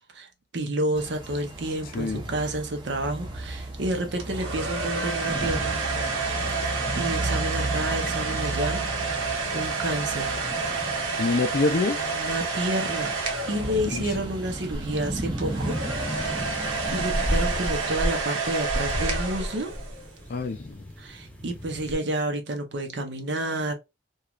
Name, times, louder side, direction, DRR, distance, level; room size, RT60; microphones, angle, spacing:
voice 1, 0.5-5.9 6.9-8.8 9.1-10.4 11.1-11.4 12.0-13.1 13.5-15.8 16.1-16.6 16.9-19.7 21.0-23.7, right 1 dB, 60° right, 0.7 m, -30 dB
sound 1, 0.9-18.0, right 1 dB, 25° right, 0.7 m, -34 dB
sound 2, 4.2-14.3 15.4-20.1, right 4 dB, 90° right, 0.9 m, -29 dB
voice 2, 11.2-12.0 13.9-14.1 20.3-20.8, left 3 dB, 45° left, 0.4 m, -26 dB
sound 3, 14.7-21.9, equal, 5° left, 0.8 m, -33 dB
3.0 x 2.3 x 2.3 m
head